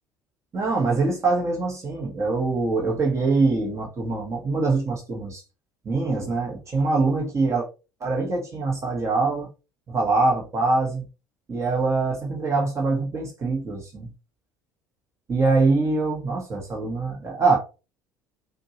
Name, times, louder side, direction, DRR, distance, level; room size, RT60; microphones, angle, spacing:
voice 1, 0.5-5.4 5.8-7.7 8.0-9.5 9.9-11.0 11.5-14.1 15.3-17.6, right 3 dB, 30° right, 1.4 m, -23 dB
5.2 x 2.6 x 2.9 m
figure-of-eight pair, 60°, 10 cm